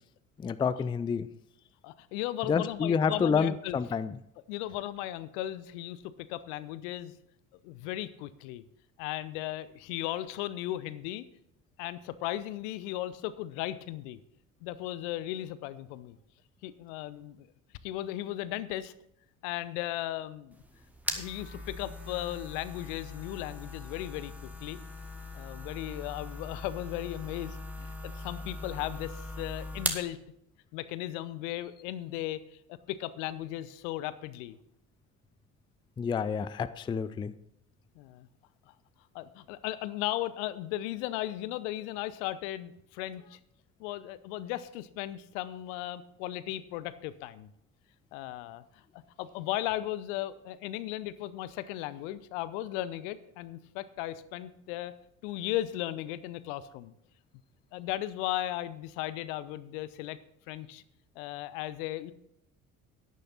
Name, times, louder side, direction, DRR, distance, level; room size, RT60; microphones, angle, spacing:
voice 1, 0.4-1.3 2.5-4.2 36.0-37.3, left 6 dB, 15° left, 15 dB, 0.4 m, -29 dB
voice 2, 1.8-3.8 4.5-7.1 7.6-8.6 9.0-11.2 11.8-14.2 14.6-16.2 16.6-17.5 17.8-18.9 19.4-20.6 21.1-24.3 24.6-24.8 25.3-30.2 30.7-34.6 38.0-38.3 39.1-43.4 43.8-47.5 48.1-48.6 48.9-54.9 55.2-56.9 57.7-60.2 60.5-60.8 61.2-62.1, left 14 dB, 60° left, 16 dB, 0.8 m, -36 dB
sound 1, 20.5-30.1, left 1 dB, 5° right, 1.8 m, -40 dB
12.0 x 9.9 x 4.0 m, 0.79 s
figure-of-eight pair, 50°, 40 cm